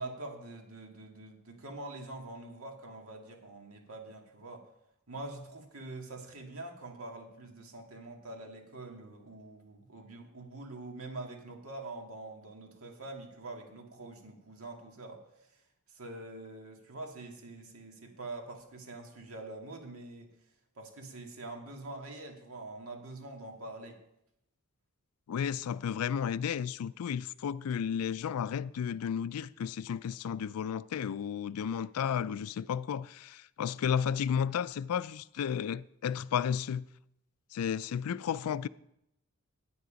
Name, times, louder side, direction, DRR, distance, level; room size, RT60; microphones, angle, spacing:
voice 1, 0.0-4.6 5.1-15.2 15.9-20.3 20.8-24.0, right 2 dB, 70° right, 1.9 m, -45 dB
voice 2, 25.3-36.9 37.5-38.7, left 8 dB, 80° left, 0.3 m, -33 dB
9.6 x 9.5 x 5.1 m
head